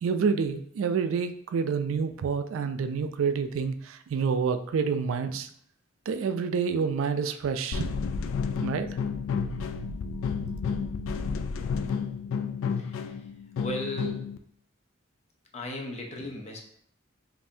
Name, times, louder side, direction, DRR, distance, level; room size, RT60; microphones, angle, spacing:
voice 1, 0.0-5.5 6.1-7.9 8.6-8.9, right 5 dB, 85° right, 9 dB, 0.3 m, -28 dB
sound 1, 7.7-14.4, left 5 dB, 85° left, 0.3 m, -31 dB
voice 2, 12.8-14.4 15.5-16.6, left 1 dB, 35° left, 1 dB, 0.6 m, -37 dB
5.3 x 2.6 x 2.6 m, 0.65 s
head